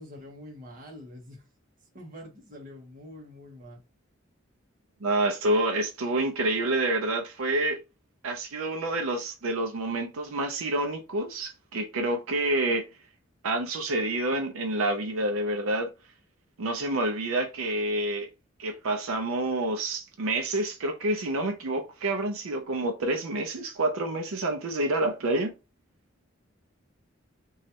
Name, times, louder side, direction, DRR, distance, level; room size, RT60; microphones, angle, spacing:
voice 1, 0.0-1.4 1.9-3.8, left 1 dB, 40° right, 1.0 m, -45 dB
voice 2, 5.0-7.8 8.2-12.9 13.4-15.9 16.6-18.3 18.6-25.5, right 2 dB, 85° right, 0.5 m, -28 dB
3.0 x 2.3 x 2.8 m
head